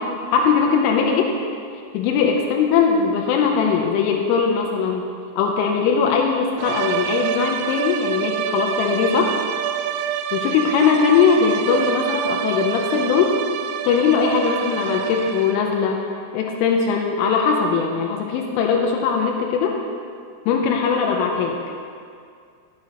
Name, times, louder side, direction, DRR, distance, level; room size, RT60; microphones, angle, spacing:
voice 1, 0.0-1.3 1.9-5.1 5.4-9.4 10.3-13.4 13.8-16.0 16.3-19.8 20.5-21.6, left 6 dB, 85° left, 1 dB, 3.2 m, -20 dB
sound 1, 6.6-15.8, right 9 dB, 90° right, 2.5 m, -26 dB
15.5 x 7.5 x 2.9 m, 2.2 s
omnidirectional pair, 5.6 m